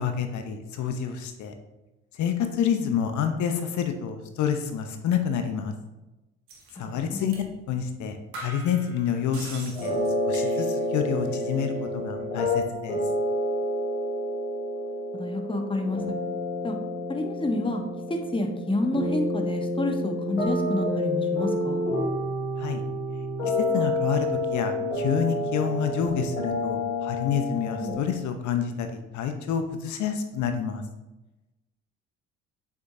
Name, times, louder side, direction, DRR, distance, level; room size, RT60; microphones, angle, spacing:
voice 1, 0.0-1.5 2.1-5.7 6.7-7.3 7.7-10.0 10.3-13.0 22.6-22.8 23.6-30.8, left 7 dB, 50° left, 7 dB, 0.9 m, -28 dB
sound 1, 6.5-6.7 7.3-7.5 7.8-7.9 8.3-11.0 11.2-11.8, right 2 dB, 65° right, 1.7 m, -43 dB
voice 2, 6.8-7.3 15.1-16.0 16.6-16.8 17.1-17.8 18.1-21.8 27.8-28.0, left 2 dB, 15° left, 5 dB, 1.1 m, -29 dB
sound 2, 9.7-27.9, left 1 dB, 85° left, 1.7 m, -29 dB
7.4 x 6.1 x 2.7 m, 1.0 s
figure-of-eight pair, 50°, 36 cm